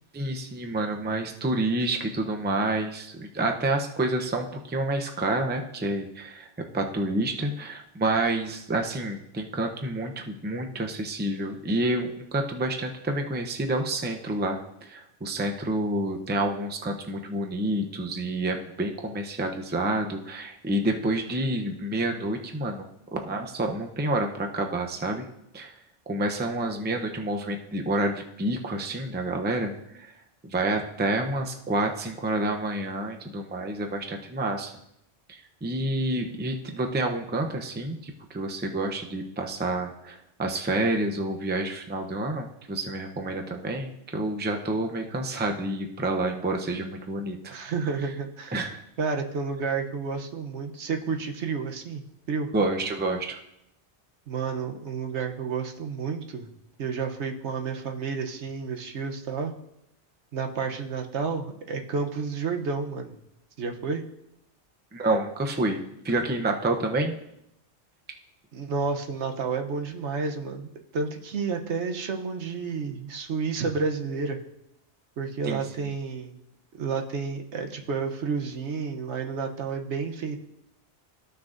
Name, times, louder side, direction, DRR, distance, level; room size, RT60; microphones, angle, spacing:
voice 1, 0.1-6.5 6.7-25.3 25.5-25.8 26.1-30.1 30.5-34.7 35.3-47.5 48.5-48.8 52.5-53.4 64.9-67.1 75.4-75.6, right 2 dB, 10° right, 3 dB, 0.5 m, -28 dB
voice 2, 47.5-48.5 49.0-52.5 54.3-56.5 56.8-59.5 60.3-63.1 63.6-64.0 68.5-74.4 75.2-76.4 76.8-80.4, right 5 dB, 75° right, 4 dB, 1.1 m, -30 dB
14.5 x 6.1 x 2.6 m, 0.80 s
omnidirectional pair, 1.2 m